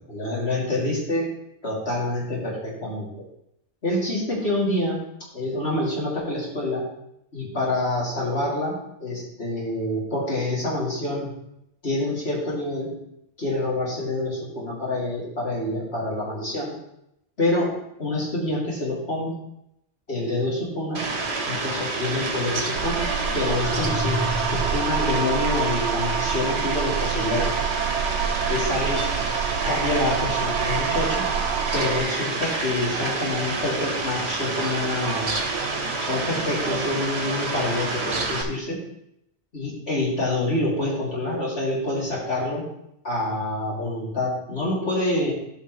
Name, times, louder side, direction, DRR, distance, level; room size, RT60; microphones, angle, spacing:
voice 1, 0.1-1.3 1.6-3.1 3.8-5.0 5.3-6.9 7.3-11.3 11.8-13.0 13.4-16.7 17.4-19.3 20.1-21.0 21.5-23.0 23.3-27.5 28.5-29.0 29.6-31.3 31.7-35.3 36.0-38.8 39.5-42.6 43.0-45.3, left 2 dB, 65° left, -6 dB, 3.3 m, -27 dB
Fowl, 20.9-38.4, right 3 dB, 70° right, 1.6 m, -28 dB
sound 1, 22.8-32.0, right 8 dB, 85° right, 0.9 m, -27 dB
sound 2, 23.6-25.1, equal, 90° left, 1.9 m, -30 dB
13.5 x 5.8 x 3.3 m, 0.80 s
omnidirectional pair, 1.2 m